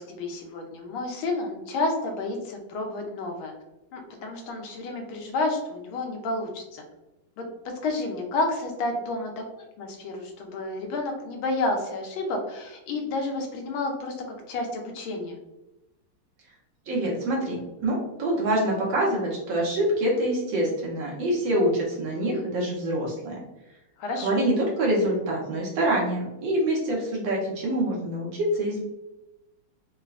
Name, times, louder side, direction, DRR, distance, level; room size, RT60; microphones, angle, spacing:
voice 1, 0.0-3.5 3.9-6.8 7.4-7.5 7.8-15.4 24.0-24.4, left 2 dB, 80° left, 2 dB, 1.4 m, -30 dB
voice 2, 16.9-23.4 24.2-28.8, right 1 dB, 70° right, -3 dB, 1.4 m, -25 dB
3.9 x 2.1 x 2.3 m, 0.97 s
omnidirectional pair, 2.3 m